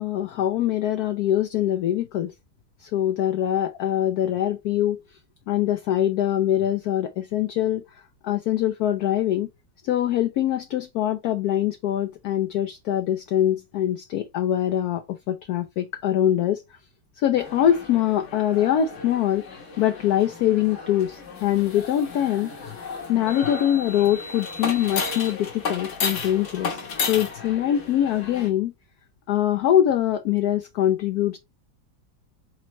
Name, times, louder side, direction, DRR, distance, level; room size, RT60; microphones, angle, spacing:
voice 1, 0.0-2.3 2.8-5.0 5.5-7.8 8.2-9.5 9.8-16.6 17.2-19.5 19.8-22.7 23.1-26.8 27.1-28.7 29.3-31.4, left 11 dB, 75° left, 0.9 m, -23 dB
sound 1, 17.4-28.5, left 4 dB, 50° left, 1.1 m, -33 dB
4.2 x 4.1 x 2.8 m
omnidirectional pair, 2.1 m